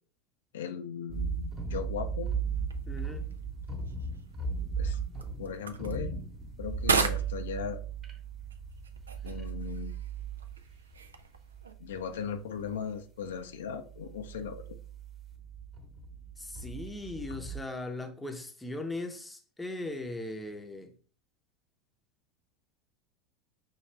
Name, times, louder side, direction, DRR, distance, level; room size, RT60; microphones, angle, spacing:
voice 1, 0.5-2.3 4.8-5.0 5.4-6.3 6.6-7.8 9.2-9.9 11.8-14.8, left 7 dB, 75° left, 0.5 m, -38 dB
sound 1, 1.1-12.3 12.6-13.0 13.2-13.3 13.7-17.6, right 5 dB, 25° right, 1.0 m, -37 dB
sound 2, 2.5-11.7, right 5 dB, 90° right, 0.4 m, -37 dB
voice 2, 2.9-3.3 16.4-20.9, left 2 dB, 10° left, 0.7 m, -39 dB
5.5 x 2.4 x 3.3 m
hypercardioid pair, 90°, 0 cm